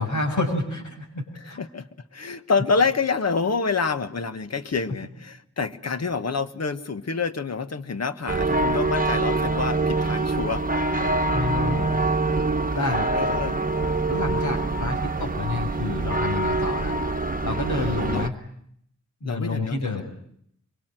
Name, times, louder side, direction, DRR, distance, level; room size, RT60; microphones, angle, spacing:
voice 1, 0.0-1.6 11.3-12.0 12.7-13.4 14.1-17.0 17.4-18.3 19.2-20.0, left 3 dB, 80° left, 4 dB, 6.7 m, -29 dB
voice 2, 1.4-10.6 11.0-11.3 12.8-13.6 17.7-18.2 19.2-20.0, left 4 dB, 60° left, 11 dB, 1.4 m, -28 dB
sound 1, 8.3-18.3, right 2 dB, 30° right, 1.1 m, -25 dB
24.5 x 24.0 x 9.0 m, 0.71 s
wide cardioid pair, 120°, 29 cm